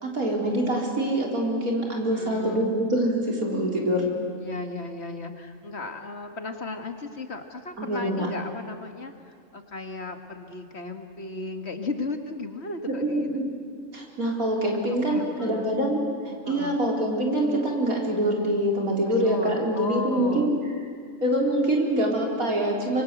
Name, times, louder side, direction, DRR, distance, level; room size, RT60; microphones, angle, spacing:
voice 1, 0.0-4.2 7.8-8.3 12.9-13.5 13.9-20.5 21.2-23.0, right 1 dB, 90° right, -1 dB, 4.6 m, -25 dB
voice 2, 2.1-2.7 4.4-13.4 15.1-15.8 16.4-16.8 19.2-20.5, left 3 dB, 50° left, 5 dB, 2.1 m, -35 dB
25.5 x 24.5 x 8.2 m, 2.2 s
omnidirectional pair, 1.5 m